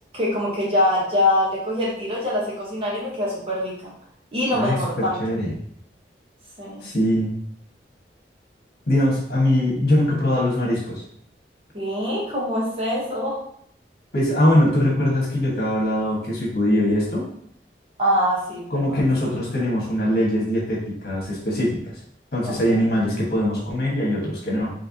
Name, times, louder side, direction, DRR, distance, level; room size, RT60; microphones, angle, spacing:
voice 1, 0.1-3.9 4.3-5.2 6.6-6.9 11.7-13.4 18.0-19.0 22.4-22.8, left 1 dB, 30° right, -5 dB, 1.1 m, -24 dB
voice 2, 4.5-5.5 6.8-7.3 8.9-11.0 14.1-17.3 18.7-21.9 22.3-24.7, left 1 dB, 60° left, -3 dB, 1.5 m, -22 dB
4.5 x 3.4 x 2.9 m, 0.67 s
head